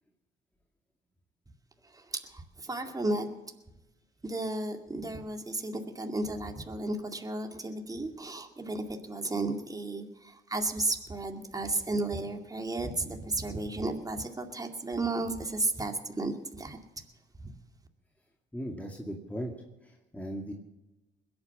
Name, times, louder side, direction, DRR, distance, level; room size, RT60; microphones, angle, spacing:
voice 1, 1.9-3.3 4.2-16.8 17.4-17.5, right 2 dB, 20° right, 4 dB, 2.2 m, -33 dB
voice 2, 18.5-19.5 19.8-20.5, equal, 5° left, 0 dB, 2.3 m, -38 dB
21.0 x 8.9 x 7.1 m, 1.0 s
cardioid pair, 90°, 20 cm